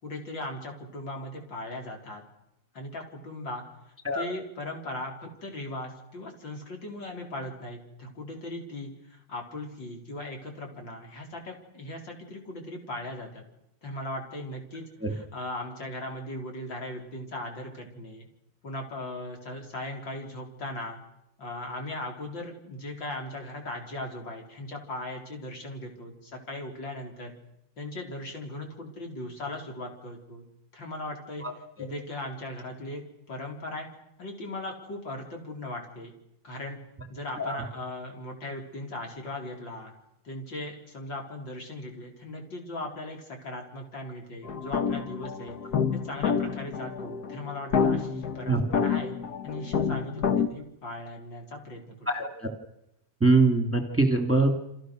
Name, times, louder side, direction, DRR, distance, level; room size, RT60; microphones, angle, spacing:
voice 1, 0.0-2.2 2.7-3.6 4.1-13.4 13.8-14.8 15.1-18.3 18.6-21.0 21.4-27.3 27.8-30.4 30.7-31.4 31.8-33.0 33.3-33.9 34.2-36.1 36.4-36.8 37.1-39.9 40.2-45.6 45.9-49.2 49.4-52.1, left 1 dB, 85° left, 2 dB, 4.8 m, -38 dB
sound 1, 44.4-50.5, left 6 dB, 60° left, 1.7 m, -28 dB
voice 2, 52.1-52.5 53.2-54.6, right 3 dB, 5° right, 4 dB, 2.4 m, -23 dB
29.0 x 26.5 x 6.5 m, 0.85 s
omnidirectional pair, 2.0 m